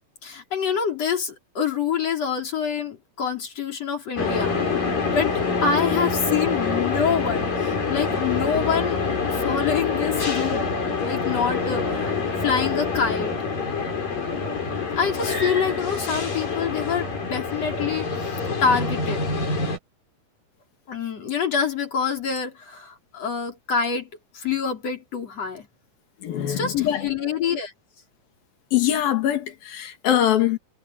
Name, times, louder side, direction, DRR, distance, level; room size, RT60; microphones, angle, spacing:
voice 1, 0.2-4.6 5.1-5.3 5.6-9.0 9.3-10.7 11.0-13.3 15.0-19.3 20.9-25.7 26.4-27.7, left 6 dB, 45° left, 5.4 m, -26 dB
sound 1, 4.2-19.8, left 4 dB, 70° left, 7.9 m, -26 dB
voice 2, 26.2-27.0 28.7-30.6, left 11 dB, 85° left, 3.9 m, -22 dB
omnidirectional pair, 4.0 m